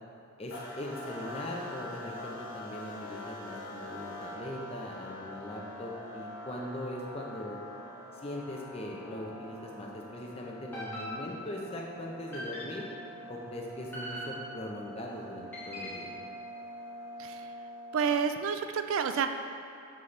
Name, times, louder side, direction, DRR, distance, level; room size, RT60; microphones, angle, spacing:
voice 1, 0.4-7.6 8.2-12.8 13.3-16.1, left 1 dB, 25° left, -1 dB, 0.7 m, -40 dB
sound 1, 0.5-18.4, left 1 dB, 55° left, 1.0 m, -45 dB
sound 2, 10.7-11.7 12.3-13.0 13.9-14.8 15.5-16.2, equal, 10° left, 1.3 m, -41 dB
voice 2, 17.2-17.5 17.9-19.3, right 6 dB, 65° right, 8 dB, 0.3 m, -29 dB
9.0 x 4.2 x 3.3 m, 2.7 s
head